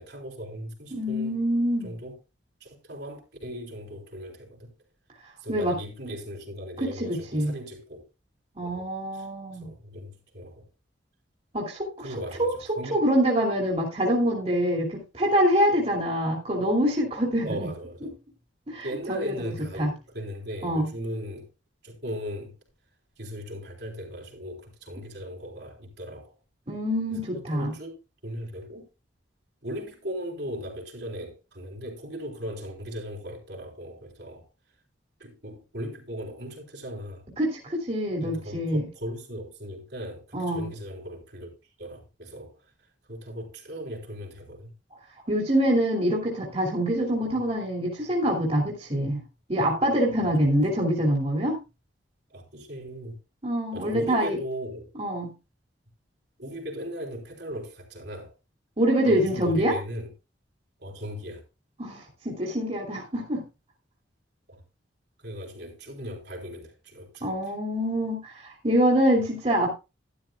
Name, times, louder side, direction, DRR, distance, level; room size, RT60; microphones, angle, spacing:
voice 1, 0.0-1.4 1.8-2.2 2.6-4.7 5.4-8.0 8.6-9.3 9.6-10.6 12.0-13.1 17.4-18.1 18.8-21.5 21.8-22.5 23.2-26.3 27.1-28.0 28.2-28.8 29.6-34.5 35.2-37.2 38.2-41.5 41.8-42.6 43.1-44.7 47.2-47.3 50.2-50.3 52.3-53.2 53.7-54.9 56.4-58.3 59.0-60.1 60.8-61.4 64.5-64.6 65.2-67.4, equal, 65° right, 3.6 m, -38 dB
voice 2, 0.9-1.9 5.5-5.8 6.8-7.5 8.6-9.7 11.5-11.9 12.4-12.6 12.9-17.7 18.7-19.3 19.8-19.9 20.6-20.8 26.7-27.7 37.4-38.8 40.3-40.7 45.3-49.2 49.5-51.6 53.4-54.4 55.0-55.3 58.8-59.7 61.8-63.4 67.2-69.7, equal, 35° right, 2.5 m, -25 dB
12.0 x 12.0 x 2.3 m
head